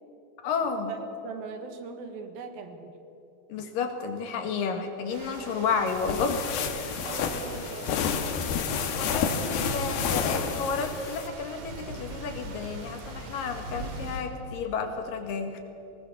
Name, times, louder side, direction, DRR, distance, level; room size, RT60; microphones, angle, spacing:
voice 1, 0.4-0.9 3.5-7.0 8.9-15.6, left 5 dB, 70° left, 5 dB, 3.2 m, -31 dB
voice 2, 1.2-2.9 7.0-8.1, right 4 dB, 80° right, 7 dB, 3.4 m, -40 dB
sound 1, 5.1-14.2, right 2 dB, 60° right, 3.6 m, -40 dB
sound 2, 5.9-11.3, left 7 dB, 85° left, 3.2 m, -30 dB
19.5 x 19.0 x 7.2 m, 2.9 s
omnidirectional pair, 4.2 m